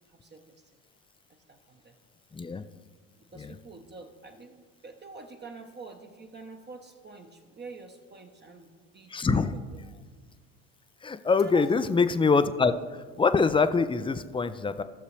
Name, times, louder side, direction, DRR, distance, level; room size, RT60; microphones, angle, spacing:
voice 1, 0.1-0.6 1.3-2.0 3.2-8.7 8.9-9.8 11.4-12.1, right 3 dB, 25° right, 3 dB, 1.0 m, -46 dB
voice 2, 2.3-2.6 3.4-3.5 9.1-9.5 11.0-14.8, left 4 dB, 15° left, 12 dB, 0.4 m, -24 dB
16.0 x 6.6 x 3.3 m, 1.5 s
hypercardioid pair, 65°, 40 cm